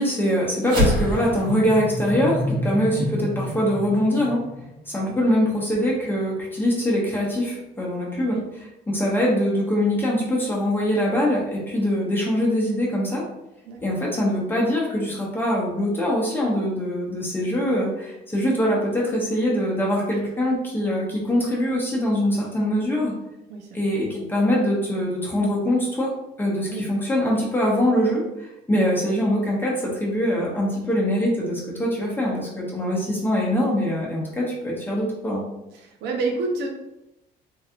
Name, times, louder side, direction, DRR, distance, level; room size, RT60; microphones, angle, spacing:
voice 1, 0.0-4.5 4.9-13.2 13.8-23.1 23.7-26.1 26.4-35.4, equal, 10° left, -4 dB, 1.0 m, -23 dB
sound 1, 0.6-5.3, equal, 55° right, 1.4 m, -27 dB
voice 2, 35.7-36.7, right 3 dB, 80° right, 1 dB, 0.7 m, -28 dB
3.1 x 2.7 x 2.4 m, 0.88 s
cardioid pair, 110°, 17 cm